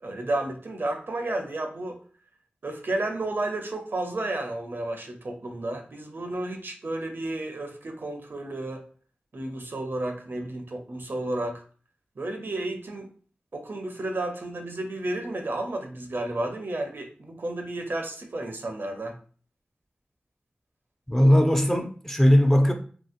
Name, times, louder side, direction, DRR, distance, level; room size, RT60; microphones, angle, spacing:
voice 1, 0.0-2.0 2.6-8.8 9.3-11.6 12.2-13.1 13.5-19.2, right 2 dB, 65° right, 0.6 m, -32 dB
voice 2, 21.1-22.7, equal, 10° left, 0.5 m, -19 dB
3.0 x 2.8 x 2.4 m
cardioid pair, 45°, 4 cm